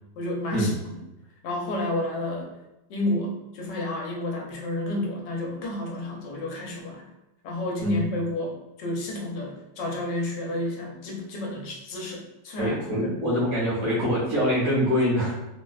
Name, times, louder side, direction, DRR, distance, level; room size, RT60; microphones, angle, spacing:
voice 1, 0.2-1.0 1.4-2.5 2.9-7.0 7.4-13.1, left 1 dB, 85° left, 0 dB, 1.4 m, -30 dB
voice 2, 12.6-15.4, equal, 90° right, -7 dB, 2.1 m, -24 dB
4.4 x 2.1 x 2.3 m, 0.92 s
omnidirectional pair, 1.8 m